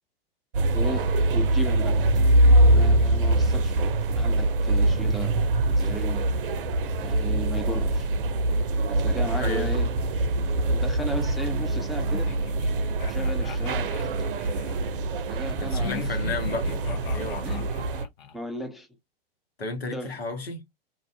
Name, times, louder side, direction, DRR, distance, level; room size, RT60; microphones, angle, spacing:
sound 1, 0.5-18.1, right 1 dB, 60° right, 0.6 m, -23 dB
voice 1, 0.7-2.0 2.6-5.4 5.7-6.2 7.0-8.1 8.9-9.9 10.7-12.3 13.1-14.1 15.3-16.1 17.2-17.7 18.3-18.9 19.9-20.1, right 1 dB, ahead, 0.4 m, -35 dB
voice 2, 9.4-9.7 15.6-16.7 17.1-17.5 19.6-20.6, left 3 dB, 85° left, 1.1 m, -32 dB
sound 2, 12.1-14.8 15.8-18.4, left 9 dB, 55° left, 0.9 m, -40 dB
2.5 x 2.5 x 3.3 m
figure-of-eight pair, 105°, 30 cm